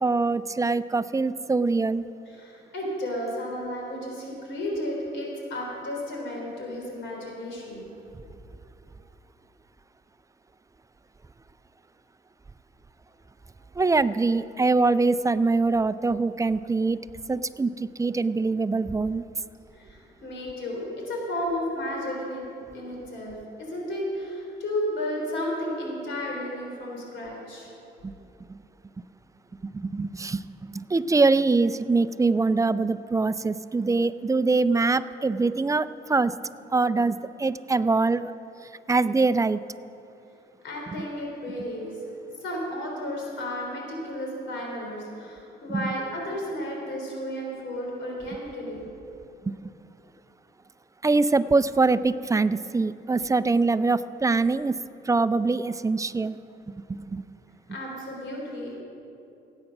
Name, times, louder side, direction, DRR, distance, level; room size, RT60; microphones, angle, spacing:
voice 1, 0.0-2.1 13.8-17.0 17.3-19.2 28.0-28.1 28.5-28.6 29.6-36.3 36.7-38.3 38.9-39.6 45.7-45.9 49.4-49.5 51.0-54.8 55.0-56.4 56.7-57.2, right 3 dB, 15° right, 14 dB, 0.4 m, -23 dB
voice 2, 2.3-7.8 19.7-22.4 22.7-27.7 40.6-42.0 42.4-48.8 57.7-58.8, left 1 dB, 70° left, -1 dB, 3.7 m, -33 dB
16.5 x 9.0 x 5.9 m, 2.7 s
cardioid pair, 90°, 20 cm